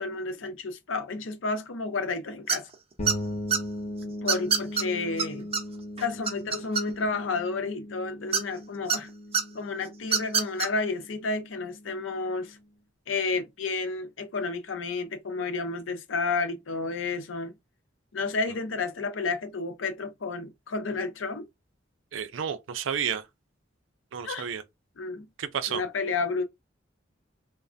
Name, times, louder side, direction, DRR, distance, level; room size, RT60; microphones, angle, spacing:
voice 1, 0.0-2.7 4.0-5.5 6.0-9.1 9.5-12.6 13.1-17.5 18.1-21.5 24.2-24.5 25.0-25.3 25.7-26.4, left 4 dB, 85° left, 0.6 m, -31 dB
sound 1, 2.5-2.7 3.1-3.6 4.3-4.8 5.2-5.3 5.5-5.6 6.0-7.1 8.3-9.0 9.3-9.4 10.0-10.7, right 6 dB, 30° right, 0.5 m, -25 dB
sound 2, 3.0-12.6, left 1 dB, 35° left, 0.7 m, -39 dB
voice 2, 22.1-23.3 24.1-24.6 25.4-25.8, right 8 dB, 85° right, 0.4 m, -31 dB
3.2 x 2.1 x 2.5 m
head